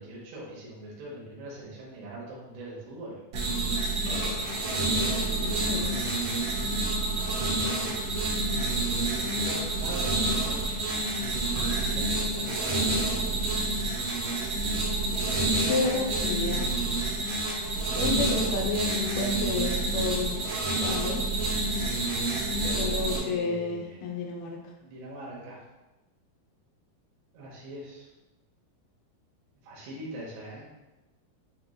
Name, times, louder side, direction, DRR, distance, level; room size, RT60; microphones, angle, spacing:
voice 1, 0.0-3.2 7.4-7.9 8.2-8.4 9.2-11.2 11.8-12.8 15.6-15.9 22.6-24.0 24.8-25.6 27.3-28.1 29.6-30.7, right 1 dB, 85° right, -5 dB, 3.1 m, -42 dB
sound 1, 3.3-23.2, right 2 dB, 70° right, 1.9 m, -28 dB
sound 2, 4.0-12.8, right 1 dB, 60° left, 1.1 m, -45 dB
voice 2, 5.4-5.9 15.7-16.7 18.0-20.4 20.8-21.2 22.6-24.6, left 3 dB, 80° left, 0 dB, 2.4 m, -31 dB
7.7 x 3.0 x 2.3 m, 1.0 s
omnidirectional pair, 4.6 m